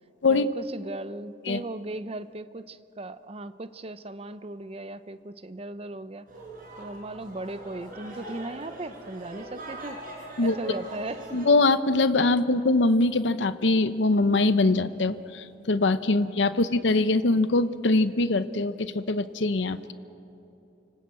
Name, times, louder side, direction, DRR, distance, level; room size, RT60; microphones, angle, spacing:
voice 1, 0.3-6.3 6.8-10.0 10.4-11.4 16.1-16.2, right 2 dB, 30° right, 13 dB, 0.7 m, -37 dB
sound 1, 6.3-11.5, right 1 dB, 50° right, 6.0 m, -41 dB
voice 2, 11.3-19.9, left 2 dB, 75° left, 12 dB, 0.8 m, -23 dB
29.0 x 19.5 x 8.4 m, 2.9 s
head